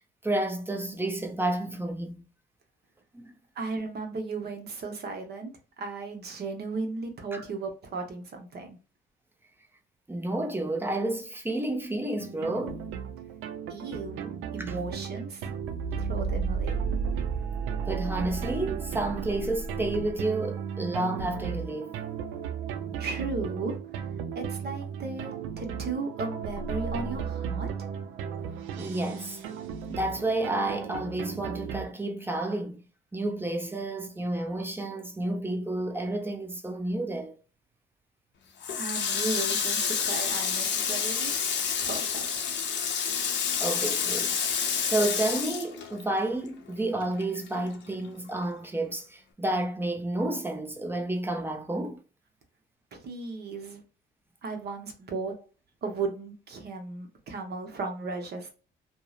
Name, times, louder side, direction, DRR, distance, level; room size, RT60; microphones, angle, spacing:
voice 1, 0.2-2.2 3.1-3.4 7.3-7.4 10.1-12.8 14.6-14.8 17.9-22.0 28.8-29.4 29.9-32.8 33.1-37.4 43.6-44.4 44.8-52.0, right 2 dB, 10° right, 0.5 m, -30 dB
voice 2, 3.6-8.8 13.7-15.4 16.0-16.8 23.0-24.0 24.3-27.7 38.8-41.3 41.8-42.4 52.9-53.8 54.4-55.3 55.8-58.5, right 3 dB, 55° right, 0.8 m, -35 dB
sound 1, 12.2-31.9, right 6 dB, 90° right, 0.4 m, -34 dB
Water tap faucet, 38.6-46.5 46.8-48.1, left 7 dB, 65° left, 0.6 m, -29 dB
2.7 x 2.0 x 2.2 m
cardioid pair, 90°, 20 cm